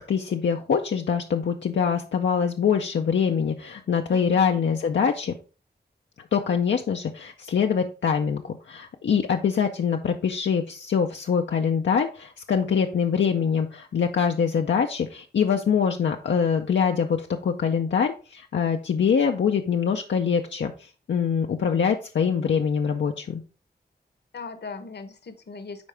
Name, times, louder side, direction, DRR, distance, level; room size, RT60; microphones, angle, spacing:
voice 1, 0.0-5.3 6.3-23.4, left 7 dB, 90° left, 3 dB, 0.5 m, -24 dB
voice 2, 4.1-4.6 24.3-25.9, left 4 dB, 70° left, 10 dB, 0.9 m, -39 dB
10.5 x 3.6 x 3.3 m, 0.35 s
cardioid pair, 55°, 18 cm